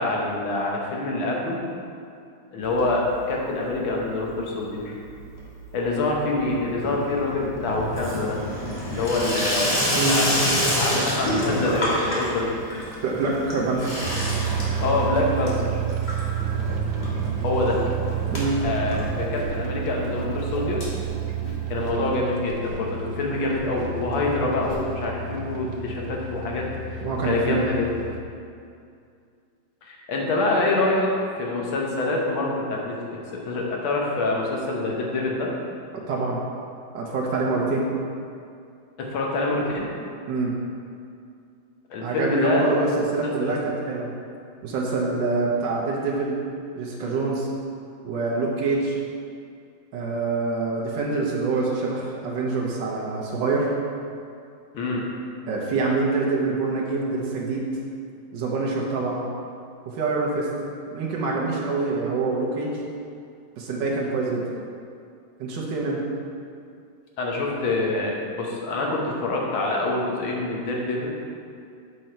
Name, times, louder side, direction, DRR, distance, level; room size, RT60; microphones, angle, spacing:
voice 1, 0.0-1.6 2.5-4.9 5.7-8.4 8.9-12.5 14.8-15.7 17.4-17.8 18.6-20.8 21.7-26.7 26.9-27.0 27.2-27.9 29.8-31.1 31.4-33.2 33.5-35.5 39.0-39.9 41.9-42.7 43.2-43.5 54.7-55.1 67.2-71.1, left 2 dB, 80° left, -2 dB, 1.9 m, -26 dB
Water tap faucet / Sink (filling or washing), 2.6-3.4 3.7-4.2 4.5-19.8 20.1-20.2 20.4-20.5 20.7-20.8 21.9-22.0, equal, 35° left, 1.6 m, -29 dB
voice 2, 13.0-14.0 18.3-18.6 27.0-27.8 36.1-36.4 36.9-37.9 40.3-40.5 42.0-44.1 44.6-46.3 46.7-47.5 48.0-49.0 49.9-53.7 55.5-57.6 58.3-59.2 59.9-60.5 60.9-62.7 63.6-64.4 65.4-66.0, right 3 dB, 70° right, -4 dB, 1.6 m, -25 dB
sound 1, 14.0-28.2, right 7 dB, 85° right, 1.5 m, -30 dB
Whoosh swoosh swish, 18.5-18.6 18.9-19.8 20.1-22.0 22.4-22.7 23.0-23.1 23.5-24.0 24.2-24.8, equal, 60° left, 2.7 m, -40 dB
7.6 x 5.4 x 4.4 m, 2.4 s
omnidirectional pair, 2.2 m